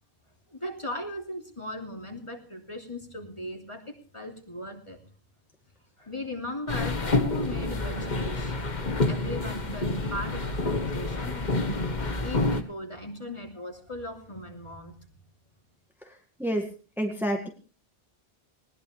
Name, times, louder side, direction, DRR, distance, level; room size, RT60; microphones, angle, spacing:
voice 1, 0.5-5.0 6.0-8.5 9.0-11.7 12.2-15.0, left 1 dB, 30° left, 2 dB, 3.1 m, -38 dB
sound 1, 6.7-12.6, left 2 dB, 45° left, 1.6 m, -28 dB
voice 2, 17.0-17.5, equal, ahead, 2 dB, 2.0 m, -28 dB
20.5 x 19.0 x 3.3 m, 0.37 s
omnidirectional pair, 1.1 m